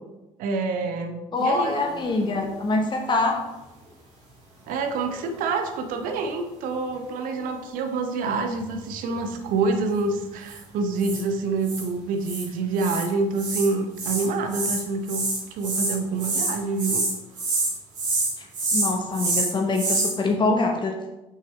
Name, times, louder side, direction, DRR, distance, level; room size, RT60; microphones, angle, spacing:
voice 1, 0.4-1.9 4.7-15.2 15.5-17.0, right 3 dB, 60° right, 5 dB, 0.8 m, -27 dB
voice 2, 1.3-3.4 18.4-18.5 18.7-20.9, left 3 dB, 30° left, 3 dB, 0.9 m, -24 dB
sound 1, 1.8-2.4 8.6-9.0 10.5-10.6 11.0-11.2 11.6-11.9 12.2-12.5 12.8-13.1 13.4-13.7 14.0-20.1, right 2 dB, 75° right, 2.3 m, -27 dB
6.6 x 5.6 x 3.1 m, 1.0 s
figure-of-eight pair, 50°, 16 cm